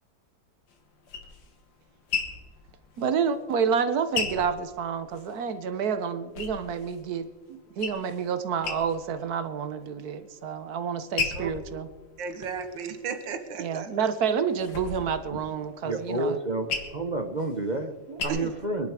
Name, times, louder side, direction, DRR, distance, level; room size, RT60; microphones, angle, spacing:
sound 1, 0.7-5.4 5.8-7.1 7.4-8.3 8.6-9.2 9.6-10.2 10.7-13.4 13.9-18.2, left 5 dB, 75° left, 2.4 m, -36 dB
voice 1, 3.0-7.3 7.8-11.9 13.6-16.4 18.1-18.5, right 7 dB, 60° right, 11 dB, 1.4 m, -29 dB
voice 2, 12.2-13.9 18.3-18.4, right 6 dB, 80° right, 8 dB, 1.9 m, -34 dB
voice 3, 15.8-17.9 18.2-18.9, right 2 dB, 35° right, 6 dB, 0.8 m, -30 dB
23.0 x 11.0 x 5.0 m, 1.3 s
omnidirectional pair, 2.0 m